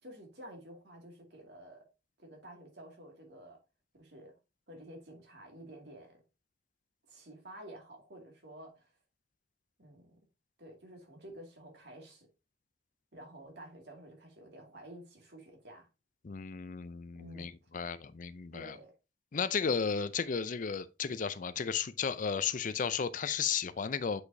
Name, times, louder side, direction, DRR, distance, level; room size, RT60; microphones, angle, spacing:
voice 1, 0.0-1.9 2.2-3.6 4.0-4.3 4.7-6.2 7.1-8.9 9.8-10.2 10.6-12.3 13.1-15.9 17.1-17.5 18.5-18.9, right 1 dB, 65° right, 2.3 m, -51 dB
voice 2, 16.2-18.8 19.3-24.2, left 6 dB, 45° left, 0.5 m, -34 dB
8.3 x 4.9 x 2.7 m
head